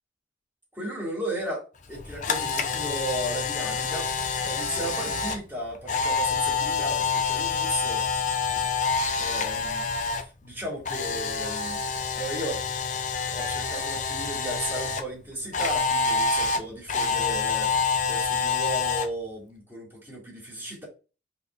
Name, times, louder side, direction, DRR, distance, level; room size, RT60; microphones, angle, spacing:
voice 1, 0.7-8.0 9.2-11.8 12.1-12.6 13.2-17.7 18.0-20.8, right 1 dB, 10° right, 3.4 m, -35 dB
Camera, 1.9-10.2 10.5-15.0 15.5-19.1, left 5 dB, 45° left, 0.8 m, -27 dB
5.3 x 4.5 x 4.2 m
head